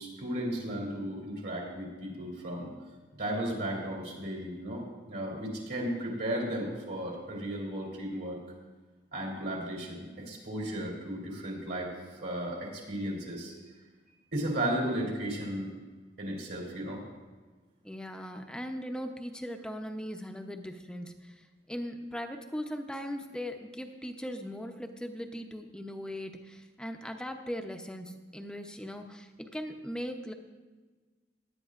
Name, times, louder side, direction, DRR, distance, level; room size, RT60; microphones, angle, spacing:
voice 1, 0.0-2.7 3.2-8.4 9.1-13.5 14.3-15.7 16.2-17.0, right 1 dB, 60° right, -2 dB, 3.1 m, -35 dB
voice 2, 17.8-21.4 21.7-30.3, equal, 5° left, 4 dB, 0.7 m, -39 dB
17.5 x 10.5 x 2.5 m, 1.3 s
head